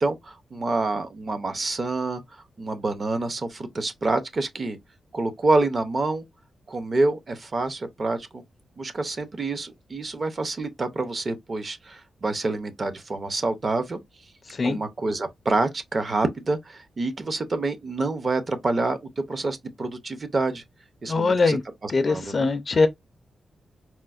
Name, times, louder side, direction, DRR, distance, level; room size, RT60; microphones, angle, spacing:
voice 1, 0.0-2.2 2.6-4.8 5.1-6.2 6.7-8.4 8.8-14.0 14.6-20.6 21.0-21.6 21.8-22.5, right 2 dB, 30° right, 0.5 m, -27 dB
voice 2, 14.5-14.8 21.1-21.6 21.9-22.9, left 3 dB, 35° left, 0.4 m, -22 dB
4.2 x 2.0 x 2.3 m
wide cardioid pair, 175°, 0 cm